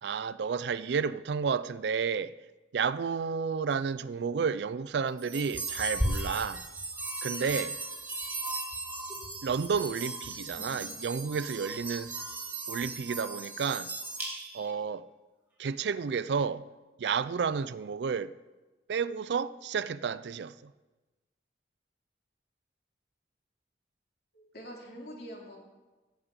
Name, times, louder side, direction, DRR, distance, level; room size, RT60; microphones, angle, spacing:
voice 1, 0.0-2.3 2.7-6.7 7.2-7.8 9.4-12.1 12.7-13.9 14.5-15.1 15.6-16.7 17.0-18.3 18.9-20.7, right 6 dB, 75° right, 0.4 m, -31 dB
sound 1, 5.2-14.7, right 2 dB, 10° right, 1.9 m, -36 dB
voice 2, 24.3-25.6, equal, 65° left, 2.8 m, -45 dB
14.5 x 5.2 x 8.2 m
head